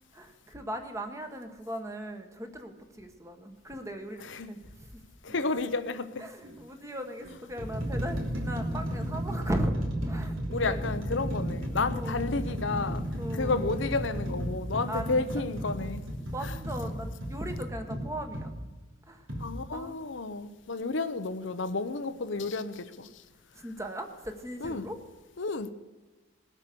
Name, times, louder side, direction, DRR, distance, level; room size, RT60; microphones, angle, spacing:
voice 1, 0.1-5.0 6.2-9.7 10.0-10.8 11.9-12.2 13.2-13.7 14.9-15.2 16.3-18.5 19.1-19.3 19.7-20.0 23.5-25.0, equal, 15° right, 1.4 m, -37 dB
voice 2, 5.2-6.3 10.5-13.1 13.3-16.0 16.4-16.5 19.4-23.2 24.6-24.9 25.4-25.7, left 3 dB, 65° left, 0.8 m, -31 dB
sound 1, 5.3-5.5 6.4-6.6 7.2-18.5 19.3-19.5, equal, 80° right, 3.3 m, -34 dB
20.0 x 8.3 x 6.8 m
head